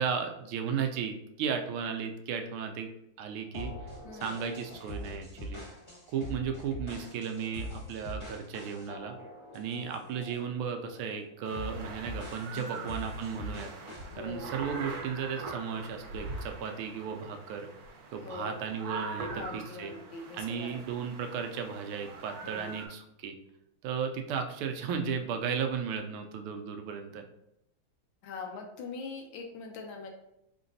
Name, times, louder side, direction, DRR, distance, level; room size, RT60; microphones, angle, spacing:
voice 1, 0.0-2.9 3.2-3.7 4.2-5.6 6.1-9.1 9.5-13.7 14.2-17.7 18.1-19.9 20.3-23.3 23.8-27.2, right 6 dB, 85° right, 5 dB, 1.5 m, -35 dB
sound 1, 3.5-10.5 10.9-11.1 11.5-14.1, left 1 dB, 15° left, 1.4 m, -43 dB
voice 2, 4.0-4.4 12.5-12.9 14.1-14.5 18.2-18.7 19.3-20.7 22.4-22.8 28.2-30.1, left 4 dB, 75° left, 3 dB, 1.3 m, -42 dB
sound 2, 11.4-22.9, right 3 dB, 65° right, 1.2 m, -43 dB
4.2 x 3.8 x 2.7 m, 0.83 s
omnidirectional pair, 2.3 m